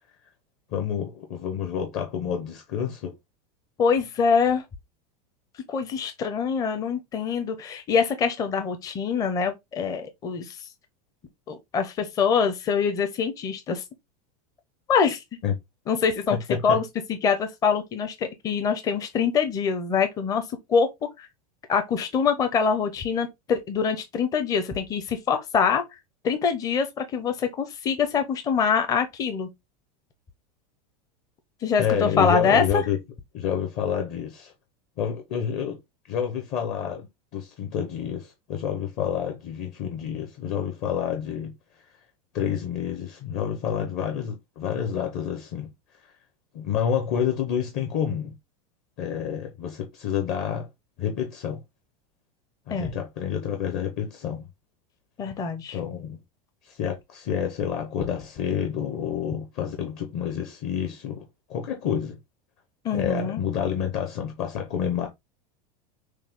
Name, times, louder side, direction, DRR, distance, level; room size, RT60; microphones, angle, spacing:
voice 1, 0.7-3.1 15.4-15.5 16.3-16.8 31.8-33.0 33.3-34.5 35.0-35.8 36.1-37.1 37.3-41.5 42.3-45.7 46.0-46.1 46.5-48.3 49.0-50.7 51.0-51.6 52.7-54.5 55.7-56.2 56.6-62.2 62.9-65.1, left 8 dB, 40° left, 0.9 m, -28 dB
voice 2, 3.8-4.6 5.7-10.6 11.5-13.8 14.9-15.2 15.9-16.4 16.6-16.8 17.1-20.4 20.7-20.9 21.2-21.3 21.7-25.8 26.2-29.5 31.6-32.8 52.7-52.9 55.2-55.8 62.8-63.4, left 6 dB, 20° left, 0.6 m, -24 dB
6.4 x 2.3 x 3.5 m
supercardioid pair, 165°, 20 cm